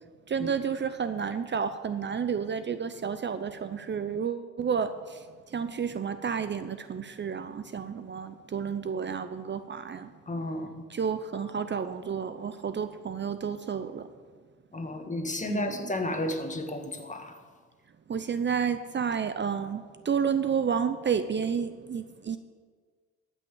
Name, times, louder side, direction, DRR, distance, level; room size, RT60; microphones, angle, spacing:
voice 1, 0.3-10.1 10.9-14.1 15.4-15.8 18.1-22.4, right 6 dB, 35° right, 11 dB, 0.7 m, -31 dB
voice 2, 10.3-10.8 14.7-17.3, left 1 dB, 25° left, 5 dB, 1.8 m, -32 dB
13.5 x 6.4 x 8.9 m, 1.5 s
cardioid pair, 90°, 30 cm